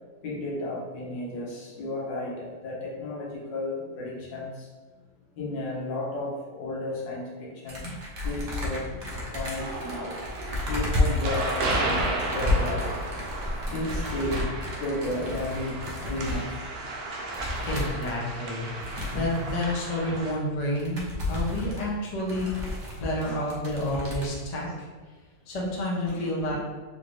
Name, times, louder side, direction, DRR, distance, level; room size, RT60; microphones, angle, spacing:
voice 1, 0.2-4.7 5.4-8.0 8.2-9.0 9.3-10.1 10.6-13.0 13.7-14.5 14.8-16.5 22.3-22.6 23.2-23.4 26.1-26.5, left 2 dB, 80° left, -4 dB, 1.6 m, -33 dB
sound 1, 7.7-16.4 16.9-17.0 17.3-18.1 18.7-19.7 20.2-20.3 20.6-23.2 23.5-24.4, left 1 dB, 50° right, 0.6 m, -31 dB
sound 2, 9.6-20.3, right 2 dB, 65° right, 1.0 m, -34 dB
voice 2, 17.6-18.7 19.1-22.5 23.0-24.7 25.5-26.6, left 1 dB, 60° left, -4 dB, 0.4 m, -29 dB
3.6 x 2.6 x 3.1 m, 1.4 s
omnidirectional pair, 1.9 m